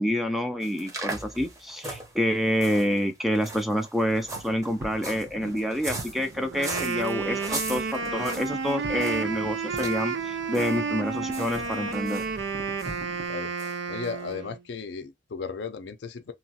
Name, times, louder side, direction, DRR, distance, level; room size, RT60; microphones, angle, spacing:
voice 1, 0.0-12.2, equal, ahead, 0.3 m, -28 dB
sound 1, 0.6-9.3 9.7-10.0 10.3-10.8 11.0-12.3 12.8-13.0 13.6-13.7 14.0-14.1, right 2 dB, 20° right, 0.7 m, -39 dB
sound 2, 4.0-13.3, right 2 dB, 70° right, 0.9 m, -43 dB
Wind instrument woodwind instrument, 6.4-14.6, right 4 dB, 90° right, 0.4 m, -31 dB
voice 2, 13.9-16.3, left 5 dB, 70° left, 0.4 m, -35 dB
3.0 x 2.3 x 2.7 m
head